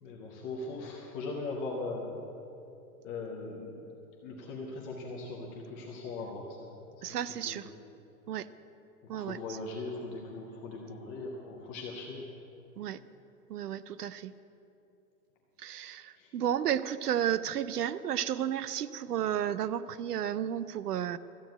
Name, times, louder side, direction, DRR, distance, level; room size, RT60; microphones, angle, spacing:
voice 1, 0.0-2.2 3.0-3.9 4.2-6.8 7.1-7.2 7.4-7.6 9.1-12.3 16.2-16.3, left 3 dB, 10° left, -2 dB, 0.3 m, -39 dB
voice 2, 7.0-7.7 8.3-8.5 9.1-9.6 12.8-13.0 13.5-14.3 15.6-21.2, right 10 dB, 80° right, 15 dB, 0.7 m, -32 dB
13.5 x 7.1 x 8.9 m, 2.8 s
hypercardioid pair, 125°, 46 cm